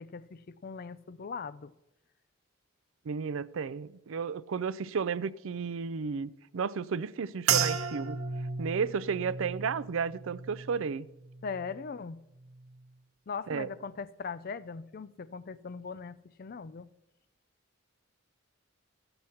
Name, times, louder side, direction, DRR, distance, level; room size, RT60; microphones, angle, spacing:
voice 1, 0.0-1.7 11.4-12.2 13.3-16.9, left 5 dB, 45° left, 0.4 m, -40 dB
voice 2, 3.1-8.2 8.6-11.0 13.5-13.7, right 6 dB, 65° right, 0.4 m, -33 dB
sound 1, 7.5-12.0 12.3-13.0 13.6-13.8, right 6 dB, 85° right, 1.0 m, -35 dB
13.5 x 7.8 x 5.7 m
head